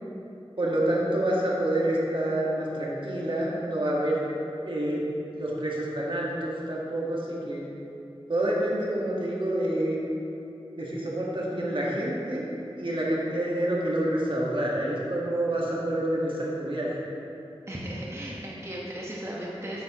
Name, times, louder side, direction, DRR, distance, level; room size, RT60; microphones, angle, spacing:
voice 1, 0.6-4.2 4.6-5.0 5.3-7.7 8.3-10.0 10.8-17.1, right 1 dB, 55° right, -5 dB, 1.5 m, -28 dB
voice 2, 17.7-19.8, equal, 25° right, -5 dB, 1.2 m, -36 dB
9.2 x 7.1 x 3.0 m, 2.8 s
wide cardioid pair, 40°, 10 cm